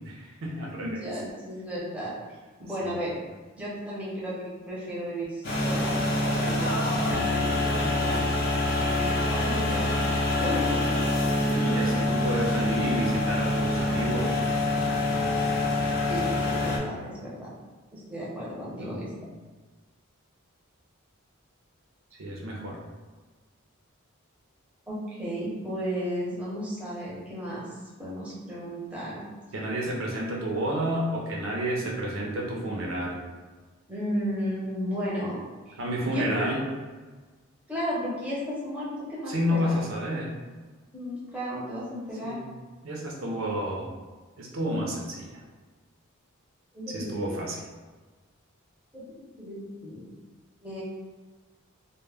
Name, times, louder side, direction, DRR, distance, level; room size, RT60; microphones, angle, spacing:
voice 1, 0.1-1.0 2.8-2.9 11.5-14.4 18.8-19.1 22.2-22.8 29.5-33.2 35.8-36.6 39.3-40.3 42.2-42.5 42.8-43.9 44.4-45.3 46.9-47.7, equal, 65° right, -2 dB, 0.5 m, -30 dB
voice 2, 0.8-2.1 2.6-3.2 3.5-6.0 6.4-8.2 8.9-10.1 10.4-10.9 16.1-17.5 17.9-19.1 24.9-27.6 28.0-29.2 33.9-35.8 36.0-36.6 37.7-39.8 40.9-42.4 46.7-47.3 48.9-49.0 49.4-50.1 50.6-50.8, equal, 5° right, -7 dB, 0.6 m, -34 dB
sound 1, 5.4-16.8, left 1 dB, 45° left, 0.5 m, -26 dB
2.1 x 2.0 x 3.3 m, 1.3 s
head